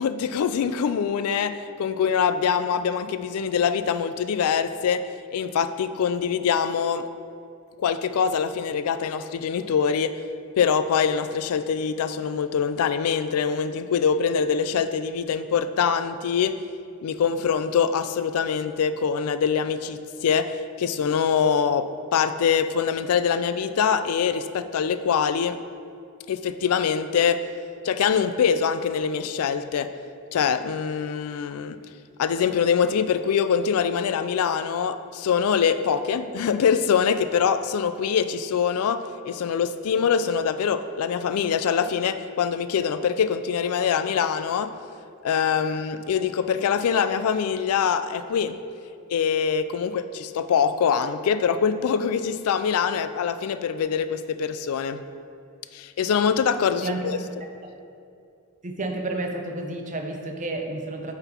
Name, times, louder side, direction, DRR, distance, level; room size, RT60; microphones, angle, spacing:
voice 1, 0.0-7.1 7.8-10.2 10.6-16.6 17.0-25.6 26.3-27.5 27.8-29.9 30.3-31.8 32.2-44.7 45.2-48.6 49.1-55.0 55.7-57.2, left 7 dB, 75° left, 11 dB, 0.3 m, -24 dB
voice 2, 56.8-57.2 58.6-61.1, right 2 dB, 35° right, 3 dB, 0.7 m, -30 dB
8.9 x 4.0 x 4.4 m, 2.4 s
head